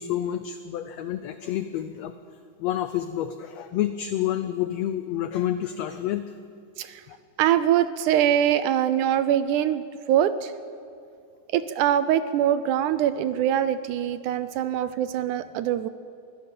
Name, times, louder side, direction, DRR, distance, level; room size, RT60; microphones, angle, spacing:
voice 1, 0.0-2.1 2.6-6.2 7.1-7.2, left 11 dB, 90° left, 10 dB, 1.4 m, -29 dB
voice 2, 7.4-10.5 11.5-15.9, right 10 dB, 80° right, 13 dB, 1.9 m, -23 dB
23.0 x 16.5 x 6.9 m, 2.4 s
omnidirectional pair, 3.8 m